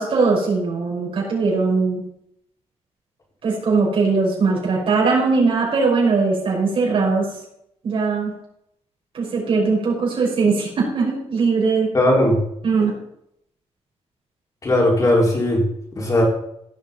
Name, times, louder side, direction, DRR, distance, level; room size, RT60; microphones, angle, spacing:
voice 1, 0.0-2.0 3.4-7.3 7.8-8.3 9.1-11.9 12.6-13.0, right 4 dB, 55° right, -4 dB, 5.8 m, -20 dB
voice 2, 11.9-12.4 14.6-15.6 15.9-16.2, left 1 dB, 30° left, -2 dB, 4.7 m, -17 dB
16.5 x 6.5 x 5.4 m, 0.74 s
wide cardioid pair, 140°, 11 cm